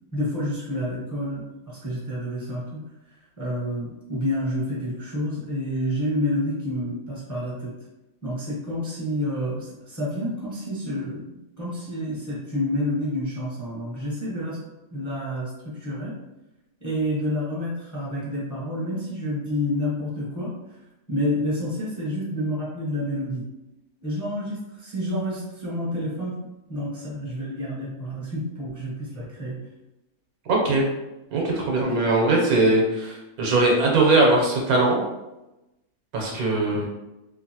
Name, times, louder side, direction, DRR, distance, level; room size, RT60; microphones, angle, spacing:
voice 1, 0.1-2.8 3.1-7.7 8.2-14.6 14.9-16.1 16.8-20.5 21.1-23.4 24.0-29.6 31.8-32.0 36.7-36.8, left 1 dB, 20° left, -7 dB, 0.5 m, -29 dB
voice 2, 30.5-30.8 31.3-35.0 36.1-36.8, right 2 dB, 85° right, -1 dB, 1.3 m, -20 dB
2.8 x 2.6 x 2.7 m, 0.97 s
omnidirectional pair, 1.5 m